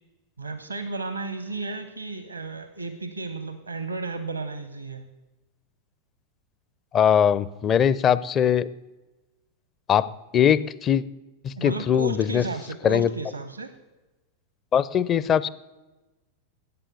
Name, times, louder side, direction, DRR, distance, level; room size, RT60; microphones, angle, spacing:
voice 1, 0.4-5.1 11.6-13.7, right 3 dB, 80° right, 11 dB, 0.8 m, -33 dB
voice 2, 6.9-8.7 9.9-11.0 11.4-12.4 12.8-13.1 14.7-15.5, left 8 dB, 30° left, 19 dB, 0.5 m, -21 dB
14.0 x 9.0 x 7.9 m, 1.1 s
figure-of-eight pair, 90°, 0 cm